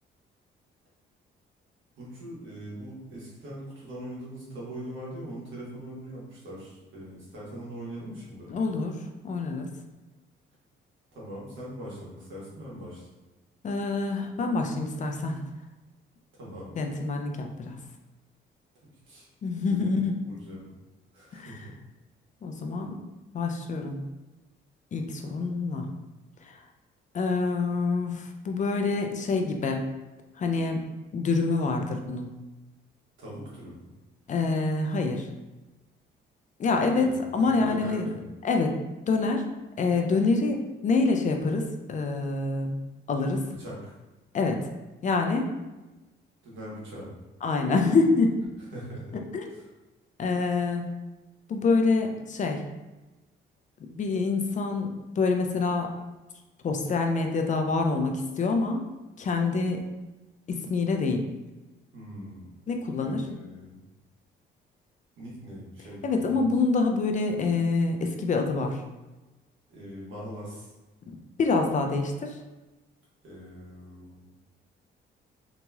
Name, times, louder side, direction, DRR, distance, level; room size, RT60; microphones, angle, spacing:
voice 1, 2.0-8.5 11.1-13.1 16.4-16.7 19.1-19.3 19.6-19.9 20.2-20.7 21.1-21.7 33.2-33.8 37.0-38.3 43.6-43.9 46.4-47.1 48.7-49.2 49.5-49.7 61.9-62.5 63.0-63.9 65.2-66.4 69.7-70.7 73.2-74.2, right 1 dB, 75° right, -6 dB, 1.3 m, -41 dB
voice 2, 8.5-9.7 13.6-15.4 16.8-17.8 19.4-20.2 21.3-21.5 22.4-23.0 23.3-24.0 24.9-25.9 26.4-26.6 27.1-29.8 30.4-30.8 31.1-32.3 34.3-35.3 36.6-38.1 38.4-38.8 39.0-39.4 39.8-42.8 43.1-43.5 44.3-44.7 45.0-45.5 47.4-48.3 49.3-49.4 50.2-51.0 51.5-52.6 53.8-56.0 56.6-58.9 59.2-59.9 60.5-61.2 62.7-63.2 66.0-68.8 71.4-72.4, left 3 dB, 40° left, 4 dB, 0.4 m, -26 dB
2.9 x 2.8 x 2.3 m, 1.1 s
cardioid pair, 90°, 20 cm